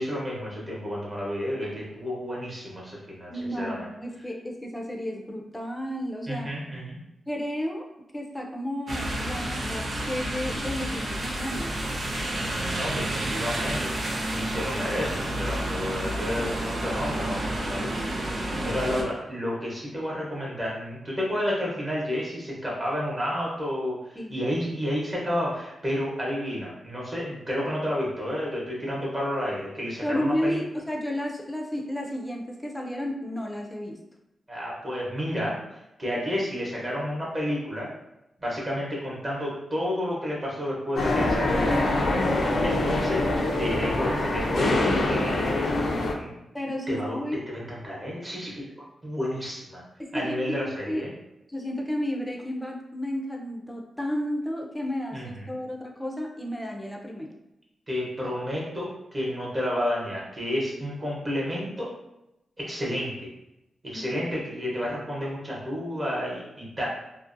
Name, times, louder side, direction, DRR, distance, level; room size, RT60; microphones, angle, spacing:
voice 1, 0.0-3.8 6.3-7.0 12.3-13.9 14.3-30.6 34.5-35.6 36.0-37.9 38.4-41.9 42.6-43.2 43.6-45.6 46.2-46.4 46.9-47.2 47.5-48.7 49.0-49.8 50.1-51.1 55.1-55.5 57.9-61.9 62.6-63.1 63.8-66.9, equal, 30° right, -5 dB, 0.9 m, -31 dB
voice 2, 3.3-6.5 7.3-11.8 24.2-24.5 30.0-34.0 42.4-42.9 46.5-47.4 50.0-50.6 50.9-51.0 51.5-57.3 63.9-64.2, equal, 10° left, 0 dB, 0.5 m, -32 dB
sound 1, 8.9-19.0, right 1 dB, 55° right, 0.5 m, -30 dB
sound 2, 41.0-46.1, left 2 dB, 80° left, 0.4 m, -24 dB
2.6 x 2.0 x 2.5 m, 0.90 s
cardioid pair, 90°, 0 cm